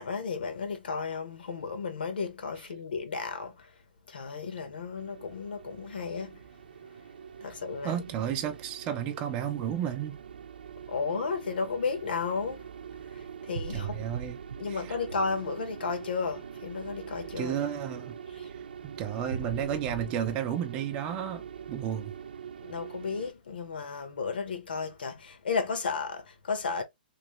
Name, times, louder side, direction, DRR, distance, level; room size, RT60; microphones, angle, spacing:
voice 1, 0.0-3.7 4.1-6.4 7.4-8.0 10.9-12.6 13.1-14.0 14.6-17.6 18.3-18.5 22.6-26.8, left 5 dB, 80° left, 1.3 m, -33 dB
sound 1, 5.0-23.3, right 7 dB, 85° right, 0.4 m, -42 dB
voice 2, 7.8-10.2 13.7-14.4 14.7-14.8 17.4-18.2 18.8-21.4 21.7-22.1, right 9 dB, 20° right, 0.5 m, -32 dB
3.1 x 2.7 x 3.1 m
hypercardioid pair, 160°, 5 cm